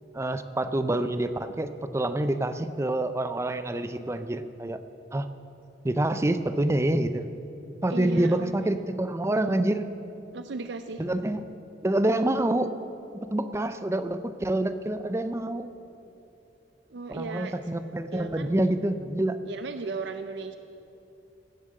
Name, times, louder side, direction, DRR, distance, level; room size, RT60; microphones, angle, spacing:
voice 1, 0.1-4.8 5.1-5.3 5.8-7.3 7.8-9.9 11.0-11.4 11.8-12.7 13.2-15.7 17.1-19.4, right 1 dB, 15° right, 11 dB, 0.5 m, -27 dB
voice 2, 7.9-8.8 10.3-11.0 16.9-17.6 18.1-18.5 19.4-20.6, right 3 dB, 70° right, 9 dB, 0.5 m, -36 dB
16.5 x 7.4 x 7.7 m, 2.8 s
head